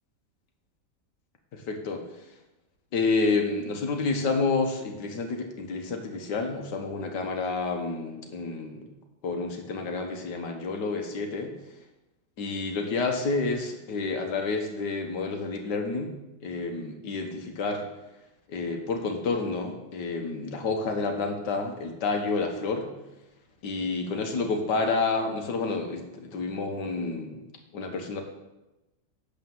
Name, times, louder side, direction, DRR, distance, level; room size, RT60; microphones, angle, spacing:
voice 1, 1.5-2.0 2.9-8.9 9.2-11.5 12.4-16.1 16.4-17.8 18.5-22.9 23.6-27.4 27.7-28.2, left 3 dB, 85° left, 4 dB, 1.8 m, -29 dB
11.5 x 4.1 x 7.5 m, 0.99 s
omnidirectional pair, 1.8 m